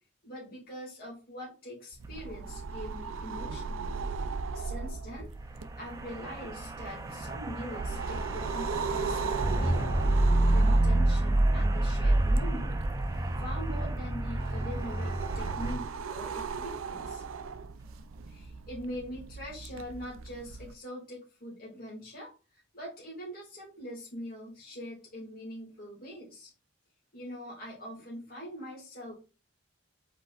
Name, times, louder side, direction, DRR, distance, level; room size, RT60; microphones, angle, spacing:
voice 1, 0.2-4.1 4.5-5.3 5.8-12.8 13.4-17.2 18.3-26.5 27.1-29.1, equal, 45° left, -4 dB, 2.2 m, -43 dB
sound 1, 1.9-18.5, right 2 dB, 15° right, 0.4 m, -43 dB
sound 2, 2.0-20.7, right 4 dB, 85° right, 0.4 m, -38 dB
sound 3, 9.4-15.8, right 1 dB, 75° left, 2.4 m, -26 dB
5.0 x 4.3 x 2.4 m, 0.32 s
head